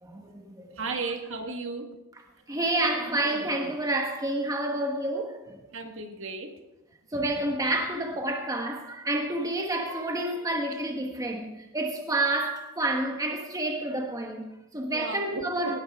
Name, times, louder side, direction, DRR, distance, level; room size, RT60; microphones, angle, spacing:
voice 1, 0.0-0.8 2.5-5.6 7.1-15.8, right 1 dB, 15° right, 1.2 m, -29 dB
voice 2, 0.8-1.9 5.7-6.5 14.9-15.8, right 3 dB, 60° right, 1.6 m, -34 dB
18.0 x 11.5 x 3.6 m
head